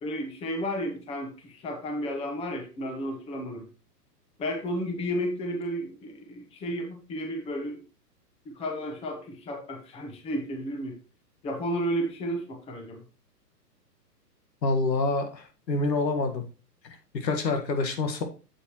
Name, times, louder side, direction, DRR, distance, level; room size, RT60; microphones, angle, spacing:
voice 1, 0.0-3.7 4.4-7.8 8.4-11.0 11.4-13.0, equal, 10° left, 4 dB, 1.0 m, -32 dB
voice 2, 14.6-16.4 16.8-18.2, left 3 dB, 80° left, 6 dB, 1.8 m, -27 dB
8.0 x 7.5 x 3.0 m, 0.33 s
hypercardioid pair, 140°, 49 cm